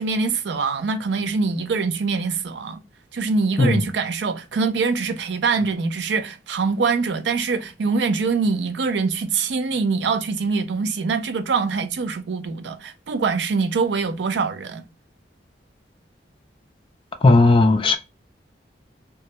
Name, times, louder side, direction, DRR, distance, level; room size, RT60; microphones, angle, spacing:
voice 1, 0.0-2.8 3.1-14.8, right 4 dB, 75° right, 0.4 m, -24 dB
voice 2, 17.2-18.0, left 2 dB, 30° left, 0.3 m, -15 dB
2.2 x 2.0 x 2.8 m
head